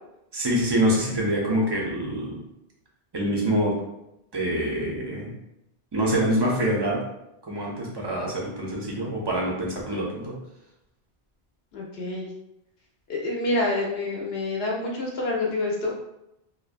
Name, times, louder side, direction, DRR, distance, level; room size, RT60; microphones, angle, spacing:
voice 1, 0.3-2.4 3.1-3.8 4.3-5.3 5.9-7.0 7.4-10.4, equal, 35° right, -3 dB, 0.4 m, -25 dB
voice 2, 11.7-12.3 13.1-16.0, left 2 dB, 70° left, -2 dB, 0.8 m, -27 dB
2.5 x 2.1 x 2.4 m, 0.86 s
omnidirectional pair, 1.1 m